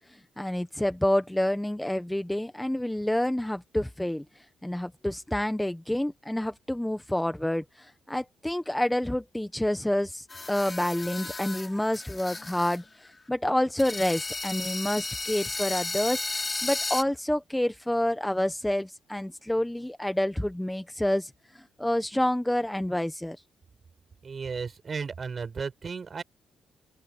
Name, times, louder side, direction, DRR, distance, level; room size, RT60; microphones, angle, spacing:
voice 1, 0.4-4.2 4.6-12.8 13.3-21.3 21.8-23.4, left 1 dB, 5° left, 1.2 m, -28 dB
sound 1, 10.3-12.8 13.1-13.2 13.8-17.0, left 3 dB, 25° left, 6.0 m, -34 dB
voice 2, 24.2-26.2, right 5 dB, 40° right, 7.3 m, -34 dB
open air
cardioid pair, 90°, 0 cm